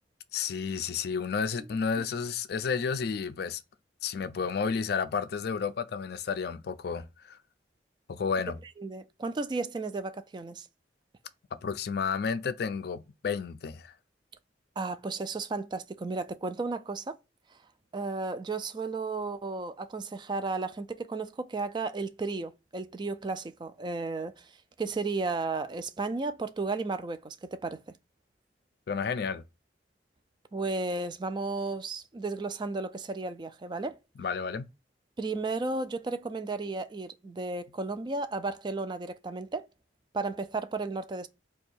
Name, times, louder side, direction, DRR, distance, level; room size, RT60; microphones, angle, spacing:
voice 1, 0.3-3.6 4.0-7.4 8.1-8.6 11.6-13.9 28.9-29.4 34.2-34.7, left 5 dB, 60° left, 0.4 m, -31 dB
voice 2, 8.8-10.7 14.8-17.2 17.9-24.5 24.8-27.8 30.5-34.0 35.2-39.7 40.1-41.3, right 3 dB, 25° right, 0.3 m, -34 dB
2.7 x 2.3 x 4.1 m
head